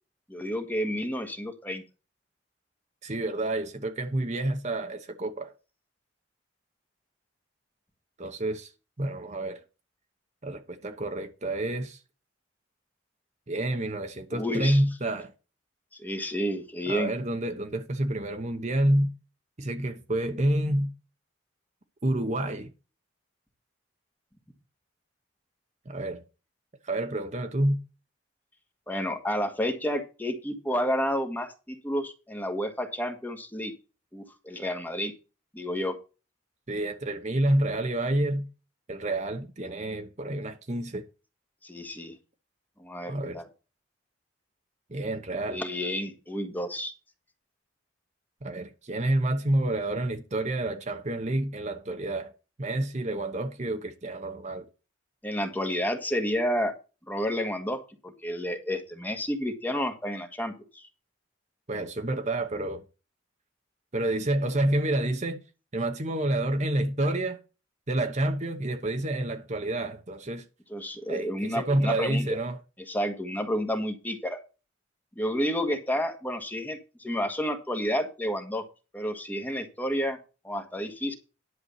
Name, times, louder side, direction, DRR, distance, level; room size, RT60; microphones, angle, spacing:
voice 1, 0.3-1.8 14.3-14.8 15.9-17.1 28.9-33.7 34.1-35.1 35.5-36.0 41.6-42.2 42.8-43.5 45.5-46.9 55.2-56.7 57.1-60.9 70.7-72.3 72.9-74.4 75.1-78.6 78.9-80.2 80.4-81.1, equal, 10° left, 1.5 m, -30 dB
voice 2, 3.0-5.5 8.2-8.7 9.0-9.6 10.4-12.0 13.5-15.3 16.9-19.1 19.6-20.9 22.0-22.7 25.9-26.2 26.8-27.8 36.7-38.4 38.9-41.1 43.1-43.4 44.9-45.6 48.4-52.3 52.6-54.7 61.7-62.8 63.9-65.4 65.7-67.4 67.9-70.4 71.1-72.6, right 1 dB, 35° right, 1.0 m, -28 dB
11.0 x 4.7 x 7.0 m
head